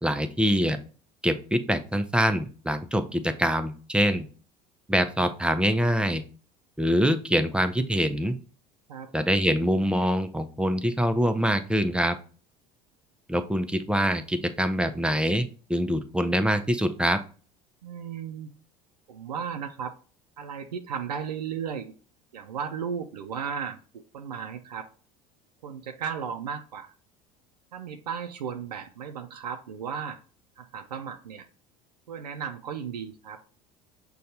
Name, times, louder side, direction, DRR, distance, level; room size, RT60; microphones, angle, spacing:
voice 1, 0.0-0.8 1.2-4.3 4.9-6.2 6.8-8.4 9.1-12.2 13.3-17.2, equal, 5° right, 8 dB, 0.4 m, -24 dB
voice 2, 17.8-18.5 19.1-19.9 20.4-21.9 22.3-24.9 25.6-26.9 27.7-30.2 30.6-31.5 32.1-33.4, right 7 dB, 90° right, 5 dB, 0.4 m, -35 dB
6.4 x 2.3 x 2.7 m, 0.38 s
hypercardioid pair, 70°, 20 cm